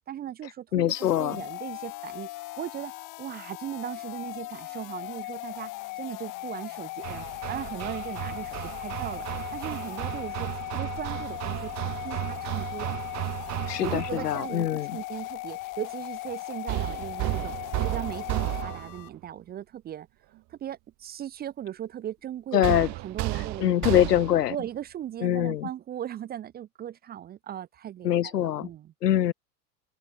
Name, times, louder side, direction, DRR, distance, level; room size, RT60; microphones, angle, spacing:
voice 1, 0.1-12.9 13.8-20.1 20.5-22.6 23.0-23.7 24.5-28.9, right 11 dB, 20° right, 0.6 m, -38 dB
voice 2, 0.7-1.4 13.7-15.0 22.5-22.9 23.6-24.6 25.2-25.7 28.0-28.7 29.0-29.3, left 11 dB, 85° left, 0.6 m, -24 dB
sound 1, 0.9-19.1, left 20 dB, 40° left, 1.9 m, -38 dB
Hammer, 7.0-14.5 16.7-19.1 22.6-24.5, right 21 dB, 35° right, 1.0 m, -33 dB
open air
figure-of-eight pair, 85°, 47 cm